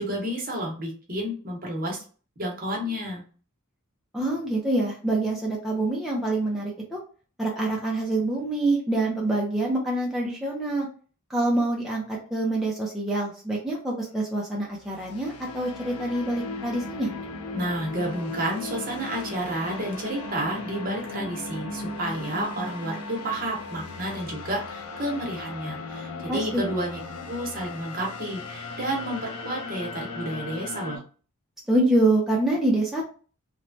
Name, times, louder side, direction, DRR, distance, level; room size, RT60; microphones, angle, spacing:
voice 1, 0.0-2.0 2.4-3.2 17.5-27.0 27.3-31.0, right 1 dB, 40° right, 0 dB, 0.9 m, -31 dB
voice 2, 4.1-7.0 7.4-10.9 11.3-17.1 26.3-26.6 31.7-33.0, right 2 dB, ahead, -4 dB, 0.5 m, -26 dB
sound 1, 14.7-31.0, left 3 dB, 85° left, 0.5 m, -37 dB
3.1 x 2.2 x 2.6 m, 0.39 s
head